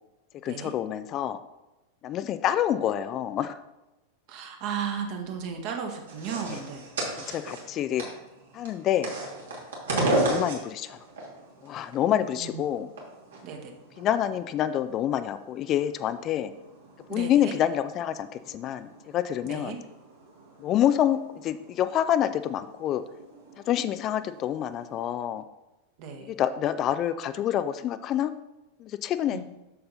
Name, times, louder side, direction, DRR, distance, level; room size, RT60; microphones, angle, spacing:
voice 1, 0.4-1.4 2.0-3.6 6.5-6.6 7.0-8.0 8.5-9.1 10.2-11.0 11.6-12.9 14.0-16.5 17.1-18.9 19.1-19.8 20.6-23.0 23.7-25.4 26.3-28.3 28.8-29.4, left 11 dB, 35° left, 12 dB, 0.4 m, -27 dB
voice 2, 4.3-6.9 12.4-12.6 13.4-13.7 17.1-17.5 19.4-19.8 26.0-26.3 29.3-29.4, right 7 dB, 45° right, 3 dB, 1.4 m, -35 dB
sound 1, 6.1-25.0, right 1 dB, 65° right, 2.3 m, -36 dB
7.5 x 6.7 x 4.1 m, 0.99 s
figure-of-eight pair, 90°, 0 cm